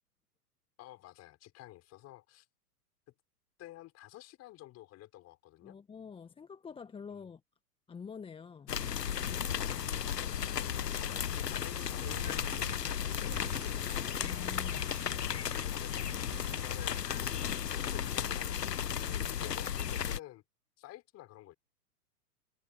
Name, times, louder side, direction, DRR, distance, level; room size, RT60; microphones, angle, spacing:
voice 1, 0.8-2.5 3.6-5.8 7.1-7.2 9.5-11.0 11.4-13.8 15.1-15.4 15.7-17.0 17.7-20.4 20.8-21.5, left 16 dB, 30° left, 5.2 m, -52 dB
voice 2, 5.6-7.4 7.9-8.7 14.2-14.9, left 6 dB, 10° left, 1.2 m, -47 dB
sound 1, 8.7-20.2, left 9 dB, 80° left, 1.0 m, -34 dB
Tearing, 11.5-16.7, right 18 dB, 50° right, 7.4 m, -52 dB
figure-of-eight pair, 110°, 47 cm